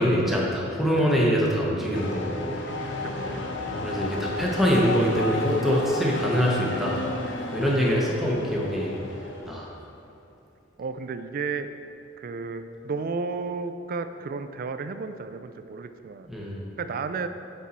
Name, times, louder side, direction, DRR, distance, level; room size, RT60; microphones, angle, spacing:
voice 1, 0.0-2.6 3.7-7.0 7.5-9.0 9.5-9.7 16.3-16.6, equal, ahead, -4 dB, 0.8 m, -24 dB
sound 1, 1.9-9.8, left 2 dB, 70° left, 0.7 m, -33 dB
voice 2, 3.0-3.4 7.9-8.1 10.8-11.7 12.2-16.3 16.8-17.3, right 4 dB, 50° right, 9 dB, 0.3 m, -33 dB
8.1 x 4.4 x 4.1 m, 2.7 s
head